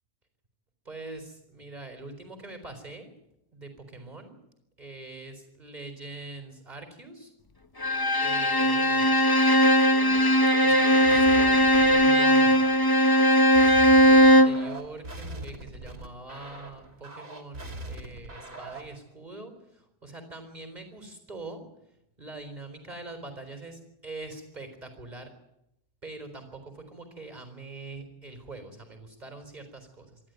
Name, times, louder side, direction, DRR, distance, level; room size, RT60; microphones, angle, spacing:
voice 1, 0.9-3.1 3.5-4.3 4.8-7.3 8.2-9.1 9.8-10.4 10.6-12.6 14.0-19.5 20.0-21.6 22.2-25.3 26.0-30.2, right 2 dB, 25° right, 6 dB, 4.2 m, -43 dB
Bowed string instrument, 7.8-14.6, equal, 35° left, 0.3 m, -19 dB
sound 1, 11.0-19.0, right 1 dB, 50° right, 3.2 m, -41 dB
26.5 x 12.0 x 9.4 m, 0.85 s
omnidirectional pair, 1.8 m